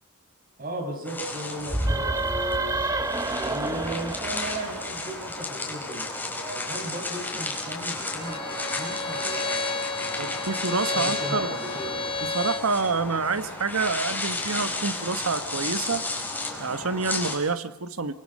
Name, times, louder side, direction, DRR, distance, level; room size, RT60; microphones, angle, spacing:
voice 1, 0.6-2.8 3.3-10.4 10.9-12.1, right 1 dB, 40° right, 3 dB, 5.7 m, -36 dB
sound 1, 1.0-17.3, left 2 dB, 10° left, 4.9 m, -33 dB
sound 2, 1.7-5.3, right 2 dB, 15° right, 0.9 m, -28 dB
Bowed string instrument, 8.2-12.7, left 3 dB, 25° left, 1.8 m, -31 dB
voice 2, 10.2-11.6 12.2-16.0 16.6-18.1, right 4 dB, 70° right, 11 dB, 1.3 m, -28 dB
26.5 x 26.0 x 5.5 m, 0.82 s
head